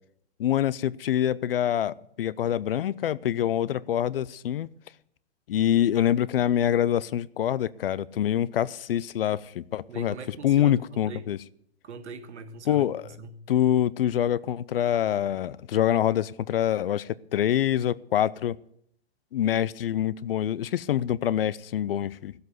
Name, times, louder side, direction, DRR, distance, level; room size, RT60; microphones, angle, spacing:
voice 1, 0.4-4.7 5.5-10.1 10.4-11.4 12.7-13.0 13.5-18.6 19.3-22.3, left 11 dB, 55° left, 0.5 m, -25 dB
voice 2, 9.9-11.3 11.8-13.4, right 4 dB, 85° right, 1.7 m, -42 dB
15.0 x 7.8 x 7.8 m
hypercardioid pair, 175°, 34 cm